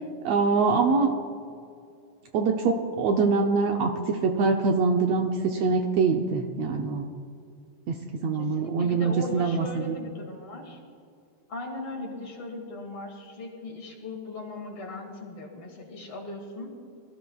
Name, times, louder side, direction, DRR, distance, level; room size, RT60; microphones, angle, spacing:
voice 1, 0.2-1.1 2.3-7.1 7.9-8.0 8.2-10.0, right 4 dB, 70° right, 3 dB, 1.8 m, -24 dB
voice 2, 8.4-10.8 11.5-16.7, left 2 dB, 50° left, 0 dB, 3.0 m, -38 dB
23.5 x 14.5 x 2.4 m, 2.3 s
omnidirectional pair, 3.4 m